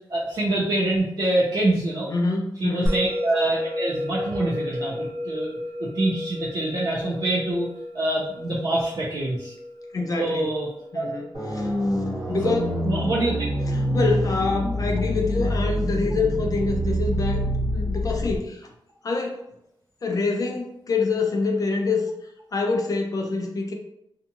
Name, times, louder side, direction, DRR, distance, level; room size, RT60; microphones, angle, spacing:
voice 1, 0.1-2.1 2.6-5.5 5.8-7.7 7.9-9.5 10.1-10.7 10.9-11.1 12.8-13.3, right 2 dB, 55° right, -6 dB, 0.5 m, -25 dB
voice 2, 2.0-2.9 9.9-10.5 10.9-11.7 12.3-12.7 13.7-17.4 17.7-18.7 19.0-19.4 20.0-22.1 22.5-23.7, left 3 dB, 45° left, 2 dB, 0.4 m, -26 dB
Musical instrument, 2.9-13.5, left 1 dB, 10° right, 0.7 m, -33 dB
sound 1, 11.3-18.4, equal, 75° right, 1.3 m, -26 dB
2.6 x 2.3 x 2.8 m, 0.82 s
wide cardioid pair, 140°, 8 cm